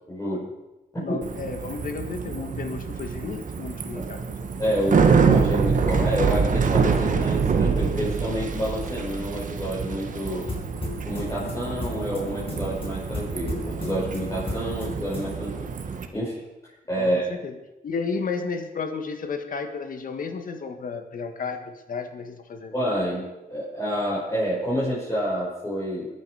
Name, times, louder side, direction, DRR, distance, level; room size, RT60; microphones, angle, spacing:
voice 1, 0.1-0.5 0.9-1.2 3.9-4.1 4.6-10.5 11.1-15.7 16.1-16.3 16.9-17.3 22.7-26.1, equal, 20° left, -8 dB, 6.0 m, -28 dB
voice 2, 1.0-4.7 10.1-10.2 16.9-17.6 17.8-22.7, left 4 dB, 65° left, 7 dB, 1.7 m, -33 dB
Bicycle, 1.2-16.0, right 5 dB, 60° right, 1.4 m, -26 dB
sound 1, 10.2-15.3, left 2 dB, 40° left, 5.7 m, -36 dB
21.0 x 10.5 x 5.0 m, 1.0 s
cardioid pair, 105°, 15 cm